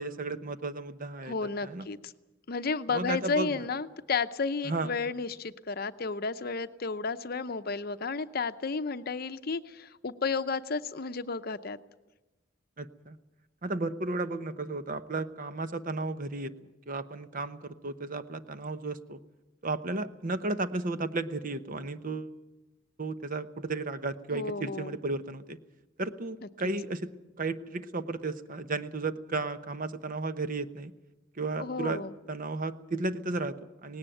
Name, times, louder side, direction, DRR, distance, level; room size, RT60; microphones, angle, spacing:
voice 1, 0.0-1.3 1.6-1.9 2.9-3.6 4.6-4.9 12.8-13.2 13.6-16.5 16.9-19.2 19.6-22.3 23.0-25.6 26.0-30.9 31.3-32.0 32.3-34.0, right 3 dB, 45° right, 11 dB, 1.0 m, -34 dB
voice 2, 1.3-2.1 2.5-11.8 24.3-24.9 31.6-32.1, left 4 dB, 50° left, 11 dB, 0.7 m, -32 dB
18.5 x 17.0 x 9.0 m, 1.1 s
head